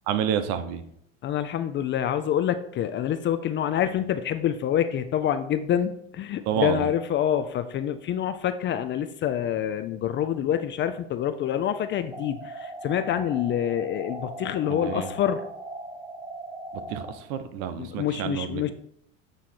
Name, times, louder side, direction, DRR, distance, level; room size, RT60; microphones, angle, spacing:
voice 1, 0.1-0.8 6.5-6.9 14.7-15.1 16.9-18.7, right 8 dB, 60° right, 10 dB, 0.9 m, -29 dB
voice 2, 1.2-15.4 17.8-18.7, left 10 dB, 30° left, 10 dB, 0.4 m, -26 dB
sound 1, 12.1-17.1, right 1 dB, 10° right, 1.2 m, -39 dB
9.1 x 3.2 x 4.3 m, 0.71 s
hypercardioid pair, 90°, 40 cm